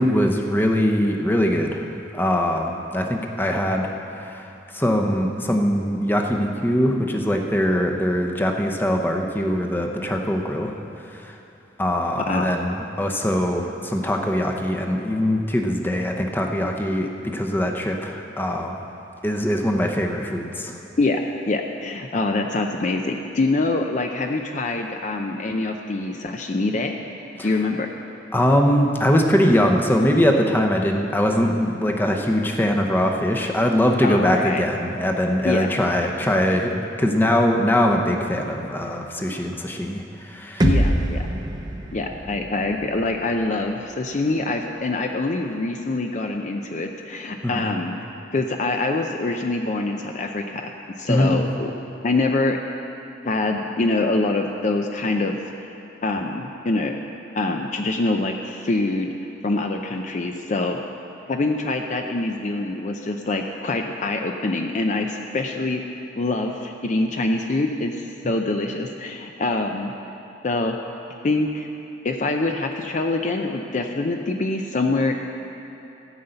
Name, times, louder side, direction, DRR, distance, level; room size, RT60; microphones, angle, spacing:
voice 1, 0.0-1.9 2.1-10.7 11.1-11.3 11.8-18.8 19.2-20.7 27.4-27.5 28.3-40.6 47.4-47.6 51.1-51.3, equal, 10° left, 2 dB, 0.8 m, -22 dB
voice 2, 12.2-12.5 21.0-21.2 21.5-26.9 27.4-27.9 34.0-34.6 35.4-35.8 40.6-41.3 41.9-48.0 48.3-51.7 52.0-52.6 53.2-55.7 56.0-57.0 57.3-59.1 59.4-60.8 61.3-65.8 66.2-69.9 70.4-70.8 71.2-71.7 72.0-75.1, left 2 dB, 40° left, 3 dB, 0.5 m, -25 dB
sound 1, 40.6-44.5, right 1 dB, 20° right, 0.7 m, -25 dB
15.0 x 5.5 x 7.9 m, 3.0 s
head